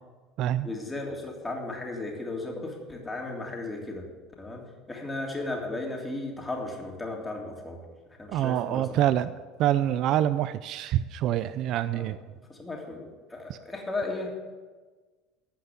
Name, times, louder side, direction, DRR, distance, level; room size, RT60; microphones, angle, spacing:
voice 1, 0.6-4.1 4.4-4.6 4.9-7.8 8.2-8.9 11.9-12.1 12.5-13.0 13.3-14.4, left 2 dB, 15° left, -1 dB, 3.2 m, -35 dB
voice 2, 8.3-9.3 9.6-12.2 13.5-13.6, right 12 dB, 60° right, 14 dB, 0.4 m, -26 dB
15.0 x 5.6 x 8.0 m, 1.3 s
supercardioid pair, 100°, 0 cm